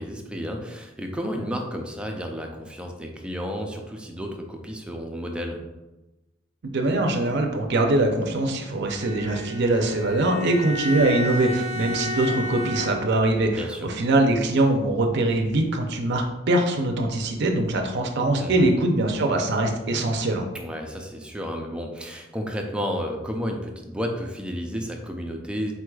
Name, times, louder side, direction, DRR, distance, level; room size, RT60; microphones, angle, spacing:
voice 1, 0.0-5.6 13.5-13.9 18.4-18.7 20.5-25.7, equal, 5° right, 2 dB, 0.4 m, -32 dB
voice 2, 6.6-20.5, right 2 dB, 60° right, 3 dB, 0.5 m, -22 dB
Bowed string instrument, 8.8-13.3, equal, 50° left, 0.9 m, -32 dB
4.6 x 4.2 x 2.3 m, 1.0 s
head